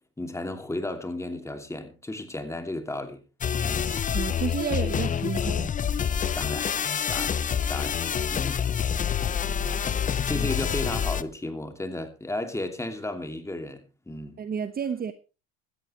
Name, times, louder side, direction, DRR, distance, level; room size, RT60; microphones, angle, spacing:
voice 1, 0.2-3.2 3.7-3.9 6.3-6.7 7.1-7.4 7.7-8.0 8.3-8.6 9.0-9.4 10.3-14.4, left 2 dB, 10° left, 2.8 m, -34 dB
sound 1, 3.4-11.2, left 8 dB, 25° left, 0.7 m, -27 dB
voice 2, 4.1-5.7 9.7-9.8 10.3-10.5 14.4-15.1, right 7 dB, 30° right, 1.1 m, -31 dB
16.0 x 13.5 x 3.3 m
hypercardioid pair, 80°, 32 cm